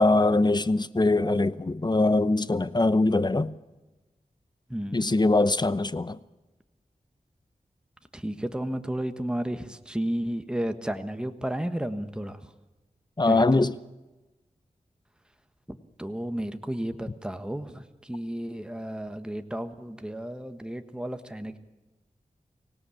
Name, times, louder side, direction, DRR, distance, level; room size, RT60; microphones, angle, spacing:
voice 1, 0.0-3.5 4.9-6.2 13.2-13.7, left 2 dB, 30° left, 0.8 m, -22 dB
voice 2, 4.7-5.0 8.1-12.5 13.2-13.6 15.7-21.6, right 1 dB, 5° right, 1.3 m, -33 dB
25.0 x 17.5 x 8.4 m
wide cardioid pair, 80°, 14 cm